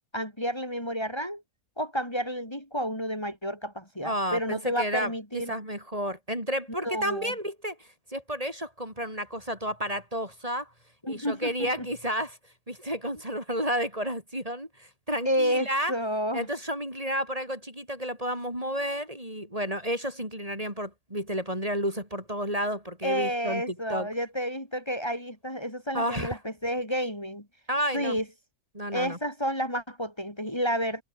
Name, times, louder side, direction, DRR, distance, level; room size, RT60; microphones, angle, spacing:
voice 1, 0.1-1.4 1.8-5.5 6.7-7.3 11.0-11.9 15.2-16.5 23.0-27.5 27.9-28.2 28.9-31.0, equal, 15° left, 6.5 m, -30 dB
voice 2, 4.0-5.1 5.5-7.8 8.1-10.7 11.1-12.4 12.7-15.9 16.3-23.6 23.9-24.1 25.9-26.3 27.7-28.2 28.7-29.2, equal, 20° right, 8.1 m, -31 dB
omnidirectional pair, 1.6 m